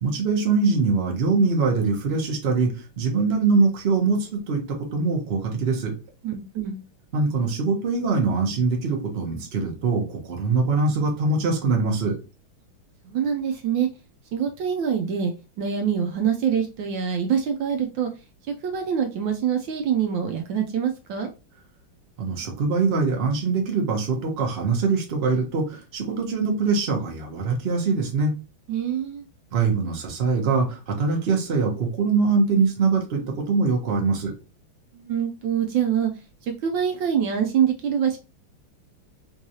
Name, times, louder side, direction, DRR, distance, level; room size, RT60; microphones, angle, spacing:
voice 1, 0.0-5.9 7.1-12.1 22.2-28.3 29.5-33.2 33.5-34.3, right 4 dB, 40° right, 1 dB, 0.9 m, -23 dB
voice 2, 6.2-6.8 13.0-13.9 14.3-18.1 18.6-21.3 28.7-29.2 34.9-36.1 36.4-38.2, right 8 dB, 75° right, 4 dB, 1.2 m, -25 dB
3.7 x 3.1 x 2.7 m, 0.31 s
omnidirectional pair, 2.3 m